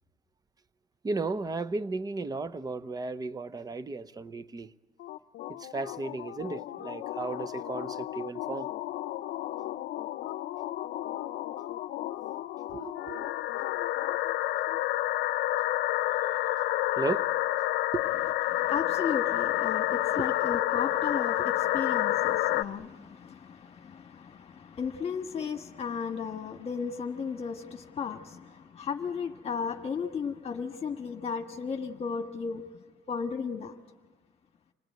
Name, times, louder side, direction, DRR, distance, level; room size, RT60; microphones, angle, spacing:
voice 1, 1.0-4.7 5.6-8.7 12.7-13.3 17.0-17.3 17.9-18.0 20.2-20.3, right 3 dB, 20° right, 0.7 m, -34 dB
sound 1, 5.0-22.6, left 15 dB, 70° left, 0.7 m, -30 dB
voice 2, 18.5-32.6 33.1-33.7, left 6 dB, 35° left, 1.5 m, -35 dB
27.0 x 18.5 x 9.2 m
cardioid pair, 110°, 17 cm